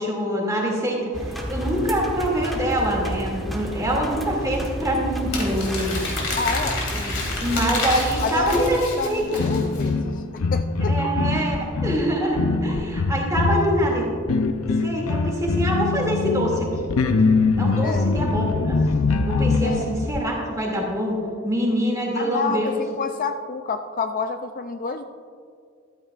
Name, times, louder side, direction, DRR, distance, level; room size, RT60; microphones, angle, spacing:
voice 1, 0.0-6.2 6.9-7.1 7.4-9.4 10.9-14.1 14.7-16.9 17.6-18.8 19.2-21.2 21.4-22.8, equal, 15° right, -2 dB, 2.3 m, -25 dB
sound 1, 1.1-8.8, equal, ahead, 1.2 m, -30 dB
Crumpling crinkling, 5.3-9.9, left 3 dB, 60° left, 2.6 m, -30 dB
voice 2, 6.4-6.9 8.2-10.1 10.5-11.0 17.8-18.1 19.6-19.8 22.2-25.0, left 4 dB, 40° left, 8 dB, 0.4 m, -28 dB
sound 2, 9.2-20.2, left 3 dB, 90° left, 0.6 m, -23 dB
14.0 x 13.0 x 2.4 m, 2.3 s
head